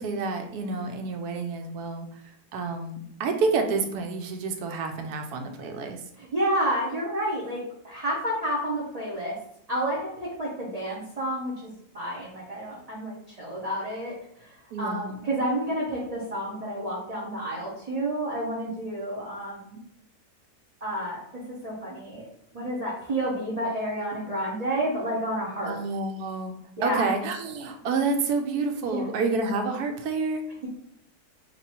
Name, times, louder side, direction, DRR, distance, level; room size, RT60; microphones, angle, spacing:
voice 1, 0.0-2.1 2.5-6.0 14.7-15.2 25.6-26.6 26.8-30.4, right 4 dB, 75° right, 5 dB, 1.1 m, -29 dB
voice 2, 6.2-9.4 9.7-14.1 14.4-19.8 20.8-22.3 22.5-25.8 26.8-27.1 28.9-29.0, right 1 dB, 35° right, -5 dB, 0.6 m, -30 dB
3.0 x 2.6 x 4.2 m, 0.71 s
omnidirectional pair, 1.7 m